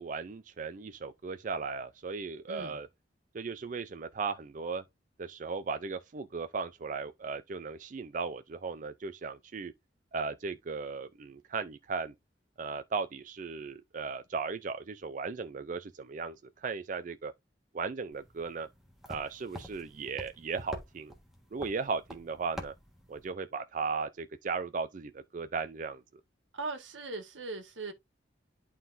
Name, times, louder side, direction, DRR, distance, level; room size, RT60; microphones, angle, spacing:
voice 1, 0.0-2.9 3.3-4.8 5.2-9.7 10.1-12.1 12.6-17.3 17.7-18.7 19.1-21.1 21.5-22.7 23.1-26.0, right 4 dB, 45° right, 0.4 m, -36 dB
voice 2, 2.5-2.8 26.5-27.9, right 3 dB, 90° right, 1.5 m, -39 dB
sound 1, 18.1-23.3, equal, ahead, 1.4 m, -47 dB
11.0 x 3.9 x 2.6 m
head